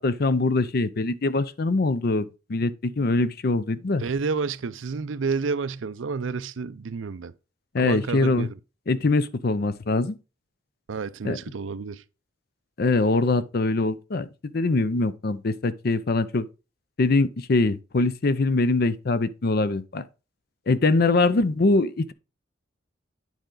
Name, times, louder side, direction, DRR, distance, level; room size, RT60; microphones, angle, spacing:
voice 1, 0.0-4.0 7.7-8.5 8.9-10.2 11.2-11.4 12.8-16.5 17.0-20.0 20.7-22.1, left 3 dB, 50° left, 0.6 m, -23 dB
voice 2, 4.0-7.3 7.8-8.5 10.9-12.0, right 5 dB, 75° right, 0.5 m, -30 dB
9.2 x 5.0 x 3.8 m
head